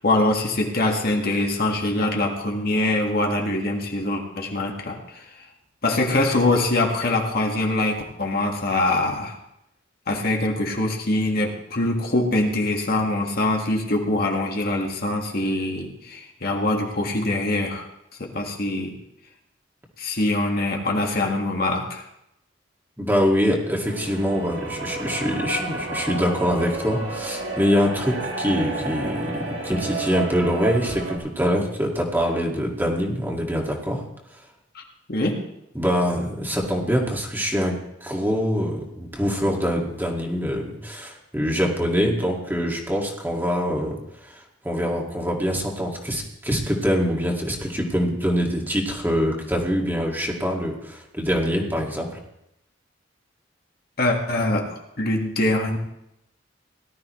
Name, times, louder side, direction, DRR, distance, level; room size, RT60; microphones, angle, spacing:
voice 1, 0.0-5.3 5.8-9.4 10.1-17.9 18.2-19.0 20.0-22.0 34.8-34.9 35.1-35.4 54.0-55.8, left 2 dB, 55° left, 1 dB, 1.8 m, -23 dB
voice 2, 23.0-34.0 35.8-44.0 44.2-52.1, equal, 10° right, -1 dB, 2.1 m, -24 dB
sound 1, 23.9-31.2, right 2 dB, 75° right, 2.6 m, -31 dB
18.5 x 12.5 x 3.2 m, 0.82 s
head